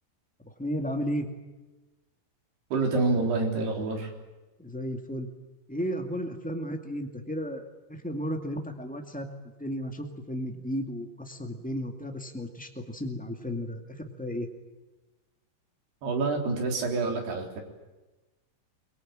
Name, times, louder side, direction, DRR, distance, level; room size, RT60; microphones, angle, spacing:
voice 1, 0.6-1.3 4.6-5.3 5.7-9.3 9.6-13.8 14.2-14.5, equal, 10° left, 3 dB, 0.4 m, -34 dB
voice 2, 2.7-4.1 16.0-17.6, right 3 dB, 80° right, 2 dB, 5.7 m, -27 dB
24.5 x 23.0 x 8.9 m, 1.1 s
omnidirectional pair, 4.6 m